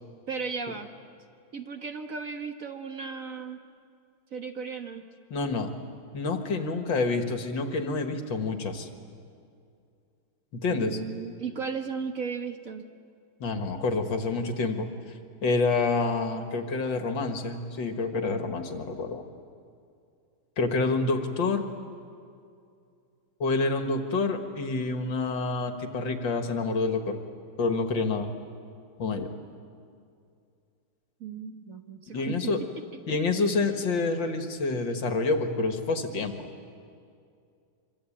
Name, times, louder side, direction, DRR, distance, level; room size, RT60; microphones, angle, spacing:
voice 1, 0.3-0.9 1.5-3.6 4.3-5.1 10.7-12.9 31.2-32.4, right 5 dB, 45° right, 6 dB, 1.6 m, -35 dB
voice 2, 5.3-5.7 6.1-8.9 10.5-11.0 13.4-14.9 15.4-19.2 20.6-21.6 23.4-27.2 27.6-28.3 29.0-29.3 32.1-32.6 33.1-36.5, left 3 dB, 70° left, 6 dB, 2.5 m, -28 dB
25.0 x 25.0 x 8.8 m, 2.4 s
omnidirectional pair, 2.1 m